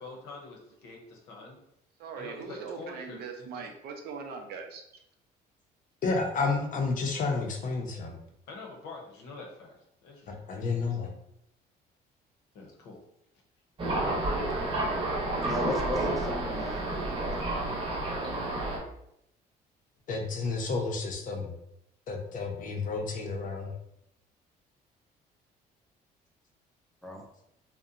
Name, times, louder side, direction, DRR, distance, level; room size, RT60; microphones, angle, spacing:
voice 1, 0.0-1.6 2.2-3.5 8.5-9.7 10.0-10.6 12.5-13.0, left 3 dB, 90° left, 0 dB, 0.7 m, -46 dB
voice 2, 2.0-5.0, right 5 dB, 70° right, 4 dB, 0.5 m, -41 dB
voice 3, 6.0-8.1 10.3-11.1 20.1-21.5 22.1-23.7, left 4 dB, 50° left, 2 dB, 0.6 m, -31 dB
Thunder, 13.8-18.8, right 2 dB, 30° right, 0.8 m, -30 dB
voice 4, 15.4-17.4 27.0-27.2, left 1 dB, ahead, -1 dB, 0.5 m, -35 dB
2.7 x 2.1 x 2.4 m, 0.78 s
cardioid pair, 110°, 17 cm